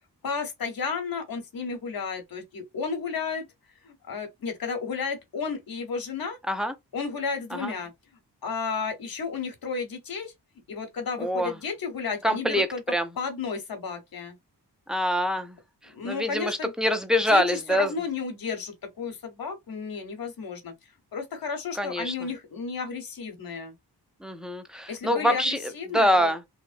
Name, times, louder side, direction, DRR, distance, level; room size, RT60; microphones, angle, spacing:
voice 1, 0.2-3.4 3.8-6.4 6.9-7.9 8.4-10.3 10.7-12.8 13.2-14.4 15.9-16.7 17.3-20.7 21.1-23.7 24.9-26.3, left 5 dB, 60° left, 0.9 m, -33 dB
voice 2, 11.2-11.5 12.2-13.1 14.9-15.5 16.0-17.9 21.8-22.1 24.2-26.4, equal, ahead, 0.4 m, -25 dB
2.7 x 2.0 x 2.5 m
cardioid pair, 75°, 39 cm